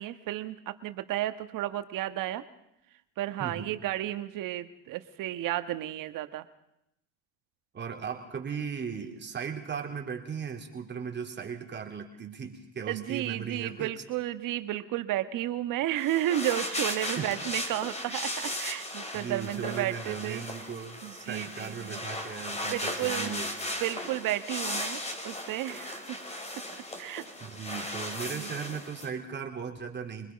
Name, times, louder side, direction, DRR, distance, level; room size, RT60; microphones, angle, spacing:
voice 1, 0.0-2.4 3.2-6.4 12.9-20.4 21.0-22.0 22.7-23.4 23.8-26.2 27.0-27.2 27.7-27.9 28.3-28.5, right 14 dB, 60° right, 11 dB, 1.4 m, -32 dB
voice 2, 3.4-3.8 7.7-13.9 17.2-17.3 19.1-23.8 27.4-30.3, right 6 dB, 30° right, 2 dB, 3.3 m, -37 dB
sound 1, 16.0-29.1, left 1 dB, 20° left, 3.5 m, -36 dB
25.0 x 20.5 x 5.3 m, 0.84 s
supercardioid pair, 105°, 36 cm